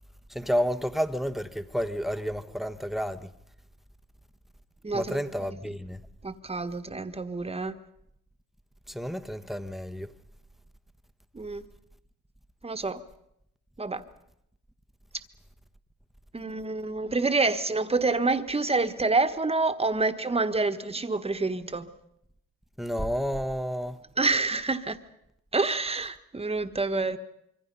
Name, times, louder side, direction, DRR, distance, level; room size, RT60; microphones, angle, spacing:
voice 1, 0.3-3.3 4.9-6.1 8.9-10.1 22.8-24.0, equal, ahead, 1.2 m, -30 dB
voice 2, 4.8-5.5 6.2-7.8 11.3-11.7 12.6-13.0 13.8-14.0 16.3-21.9 24.2-25.0 25.5-27.2, right 3 dB, 20° right, 1.5 m, -27 dB
26.0 x 24.0 x 5.5 m
cardioid pair, 90°, 30 cm